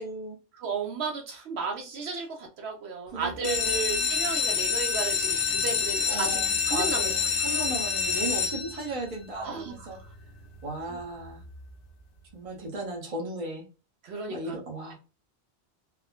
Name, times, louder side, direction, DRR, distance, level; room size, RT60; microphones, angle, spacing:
voice 1, 0.0-0.3 3.1-4.1 6.1-10.0 10.6-11.4 12.3-13.6 14.3-14.9, right 2 dB, 35° right, -2 dB, 0.8 m, -36 dB
voice 2, 0.5-6.4 6.7-7.1 7.5-7.7 9.3-9.9 14.0-14.6, right 4 dB, 75° right, 2 dB, 0.8 m, -34 dB
sound 1, 3.3-9.1 9.7-10.2 10.6-10.7 10.9-11.0 11.4-11.5, left 5 dB, 60° left, 0.8 m, -27 dB
3.5 x 2.1 x 2.3 m, 0.32 s
omnidirectional pair, 1.1 m